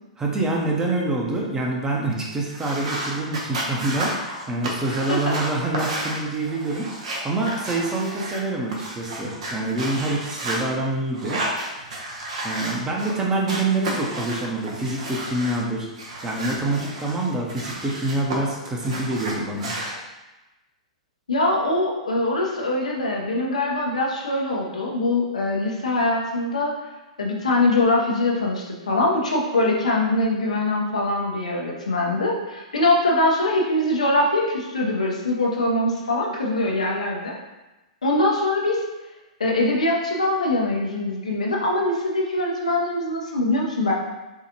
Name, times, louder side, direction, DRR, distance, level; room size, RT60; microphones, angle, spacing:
voice 1, 0.2-6.9 7.2-11.4 12.4-15.9 16.2-19.7, right 2 dB, 15° right, -2 dB, 0.8 m, -26 dB
sound 1, 2.5-8.4 8.7-10.6 11.1-13.1 13.5-15.6 15.9-18.4 18.6-19.9, right 1 dB, 65° right, 0.9 m, -32 dB
voice 2, 21.3-26.7 27.2-37.4 38.0-38.8 39.4-43.9, left 2 dB, 80° left, -2 dB, 0.8 m, -23 dB
4.6 x 2.4 x 2.9 m, 1.1 s
hypercardioid pair, 110°, 4 cm